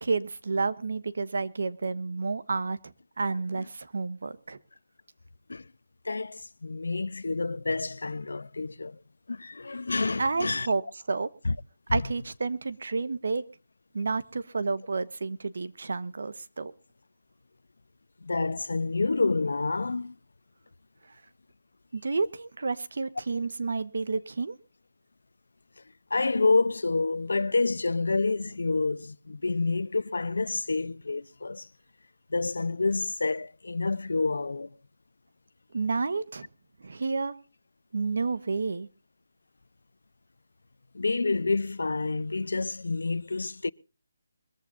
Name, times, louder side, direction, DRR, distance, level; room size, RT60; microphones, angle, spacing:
voice 1, 0.0-2.8 3.2-4.6 10.2-10.8 11.1-11.3 11.9-13.4 13.9-16.7 21.9-24.6 35.7-36.5 36.8-37.3 37.9-38.9, right 4 dB, 65° right, 1.2 m, -30 dB
voice 2, 6.0-9.0 9.3-10.7 11.4-11.6 11.9-12.0 18.2-20.1 26.1-31.7 32.3-34.7 40.9-43.7, left 3 dB, 85° left, 0.7 m, -28 dB
23.0 x 14.5 x 2.6 m
hypercardioid pair, 175°, 0 cm